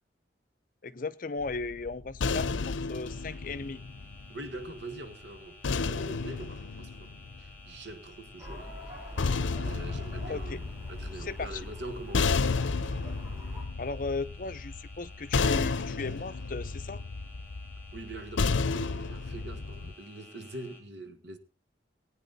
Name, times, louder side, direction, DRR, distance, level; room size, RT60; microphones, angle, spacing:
voice 1, 0.8-3.8 10.3-10.6 11.2-11.6 13.8-17.0, left 3 dB, 45° left, 0.6 m, -36 dB
sound 1, 1.4-4.7 5.6-7.9 8.9-19.9, left 4 dB, 90° left, 0.6 m, -32 dB
sound 2, 3.0-20.8, left 2 dB, 10° left, 3.5 m, -54 dB
voice 2, 4.3-7.1 7.4-9.2 9.6-12.4 17.9-21.4, right 2 dB, 70° right, 1.7 m, -44 dB
sound 3, 8.4-13.7, left 1 dB, 15° right, 4.8 m, -44 dB
19.5 x 9.2 x 4.1 m
head